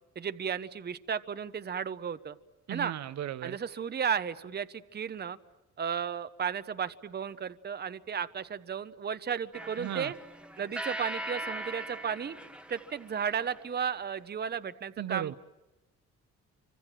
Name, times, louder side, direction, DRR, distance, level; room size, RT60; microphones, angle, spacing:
voice 1, 0.2-2.4 2.7-2.9 3.4-5.4 5.8-10.1 10.6-12.4 12.7-15.4, right 7 dB, 35° right, 0.9 m, -34 dB
voice 2, 2.7-3.6 9.8-10.1 15.0-15.4, right 12 dB, 65° right, 0.9 m, -36 dB
sound 1, 9.5-13.8, right 1 dB, 5° right, 1.2 m, -40 dB
28.5 x 25.5 x 7.7 m
cardioid pair, 90°, 30 cm